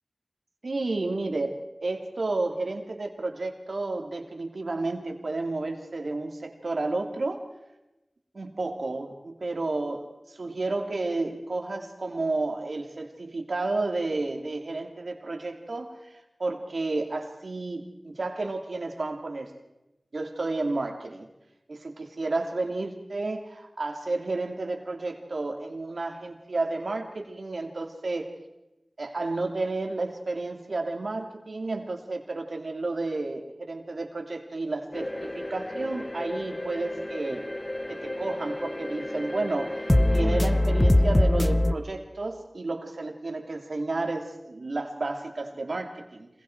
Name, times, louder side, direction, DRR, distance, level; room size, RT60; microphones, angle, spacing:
voice 1, 0.6-7.4 8.3-19.5 20.1-21.3 21.7-28.3 29.0-37.5 37.9-46.3, right 2 dB, 85° right, 4 dB, 2.6 m, -31 dB
sound 1, 34.9-41.7, left 1 dB, 30° left, 1.0 m, -25 dB
26.5 x 21.5 x 4.6 m, 0.96 s
wide cardioid pair, 45°, 0 cm